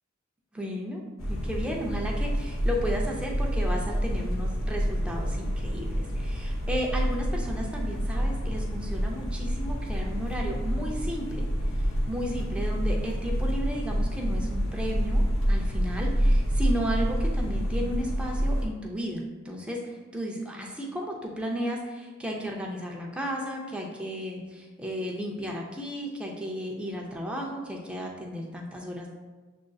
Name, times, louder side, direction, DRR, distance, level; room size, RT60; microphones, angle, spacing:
voice 1, 0.5-11.4 12.1-29.1, equal, 5° right, -1 dB, 0.5 m, -34 dB
sound 1, 1.2-18.6, equal, 75° left, 0.7 m, -28 dB
7.4 x 2.5 x 2.3 m, 1.3 s
head